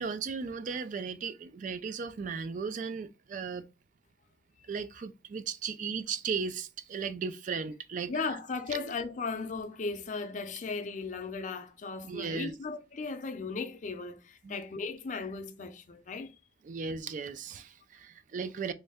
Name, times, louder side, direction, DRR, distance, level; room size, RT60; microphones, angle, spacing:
voice 1, 0.0-3.6 4.7-8.1 8.7-8.9 12.0-12.6 14.4-14.6 16.6-18.7, right 5 dB, 45° right, 0.3 m, -36 dB
voice 2, 8.1-16.3, left 4 dB, 45° left, 0.5 m, -36 dB
3.2 x 2.6 x 3.4 m
head